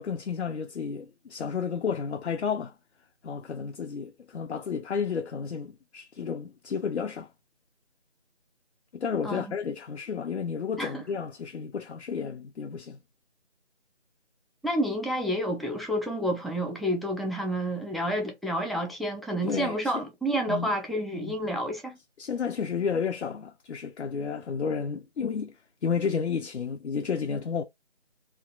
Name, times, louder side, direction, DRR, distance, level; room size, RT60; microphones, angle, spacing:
voice 1, 0.0-2.7 3.2-7.3 8.9-13.0 19.4-20.0 20.5-20.7 21.2-21.3 22.2-25.5 25.8-27.6, left 6 dB, 65° left, 0.5 m, -32 dB
voice 2, 14.6-22.0, equal, ahead, 0.3 m, -29 dB
2.5 x 2.3 x 2.3 m
figure-of-eight pair, 170°, 36 cm